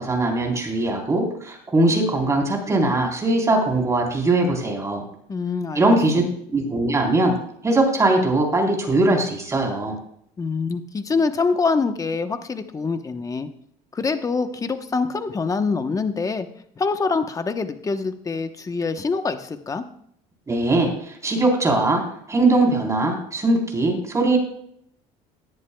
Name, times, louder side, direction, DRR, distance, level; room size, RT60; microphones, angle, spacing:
voice 1, 0.0-5.0 5.7-7.3 7.6-10.0 20.5-22.0 22.3-24.4, right 2 dB, 20° right, 1 dB, 3.8 m, -20 dB
voice 2, 5.3-5.9 6.1-6.3 10.4-13.5 13.9-16.5 16.8-19.8, left 4 dB, 20° left, 8 dB, 1.0 m, -25 dB
18.0 x 11.0 x 2.3 m, 0.67 s
cardioid pair, 115°, 15 cm